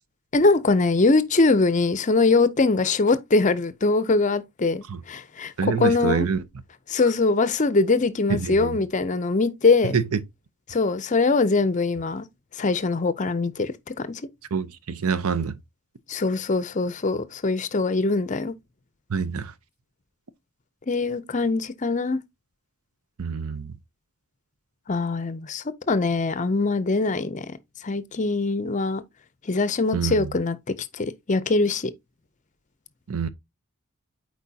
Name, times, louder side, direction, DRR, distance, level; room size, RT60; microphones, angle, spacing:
voice 1, 0.3-5.5 5.8-6.3 6.9-10.0 10.7-12.3 12.6-14.1 16.1-18.5 20.9-22.2 24.9-27.5 27.8-29.0 29.5-30.6 30.9-31.9, left 3 dB, 35° left, 0.5 m, -22 dB
voice 2, 5.6-6.4 8.3-8.8 9.9-10.2 14.5-15.6 19.1-19.5 23.2-23.7 29.9-30.3 33.1-33.3, right 6 dB, 80° right, 0.6 m, -26 dB
8.4 x 4.6 x 2.7 m
head